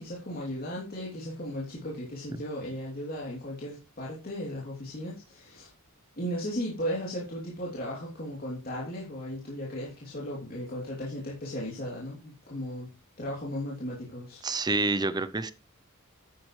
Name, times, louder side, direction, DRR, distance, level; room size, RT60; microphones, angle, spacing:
voice 1, 0.0-5.7 6.2-12.9 13.2-14.4, equal, 45° left, -5 dB, 3.1 m, -36 dB
voice 2, 14.4-15.5, right 3 dB, 20° right, 13 dB, 0.6 m, -27 dB
11.5 x 9.1 x 3.2 m, 0.29 s
head